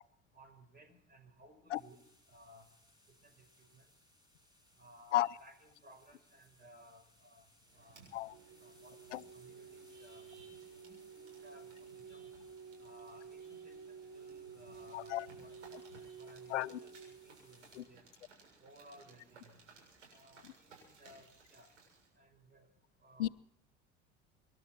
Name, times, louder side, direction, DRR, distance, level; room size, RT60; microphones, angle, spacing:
voice 1, 0.3-2.0 2.3-2.7 3.2-3.9 4.8-8.1 8.6-10.3 10.8-12.3 12.8-18.0 18.6-19.6 20.1-21.7 22.2-22.7 23.0-23.3, right 1 dB, 25° right, 8 dB, 5.4 m, -60 dB
sound 1, 1.7-17.8, left 1 dB, 10° right, 7.0 m, -68 dB
sound 2, 7.6-22.1, right 4 dB, 85° right, 7.5 m, -62 dB
sound 3, 8.3-17.4, right 5 dB, 60° right, 6.3 m, -52 dB
voice 2, 14.9-15.2 16.5-16.7 23.2-23.3, left 14 dB, 80° left, 20 dB, 0.5 m, -32 dB
26.0 x 12.0 x 4.4 m, 0.75 s
hypercardioid pair, 70°, 35 cm